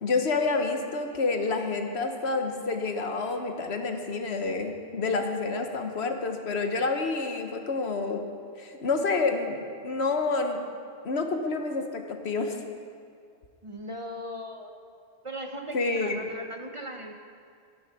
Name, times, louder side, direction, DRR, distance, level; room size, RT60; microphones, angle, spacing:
voice 1, 0.0-8.2 8.6-10.6 11.0-12.6 15.7-16.2, left 3 dB, 75° left, 5 dB, 1.3 m, -28 dB
voice 2, 13.6-14.7 15.2-17.1, equal, 30° right, 3 dB, 0.8 m, -38 dB
13.5 x 9.6 x 5.9 m, 2.3 s
omnidirectional pair, 1.1 m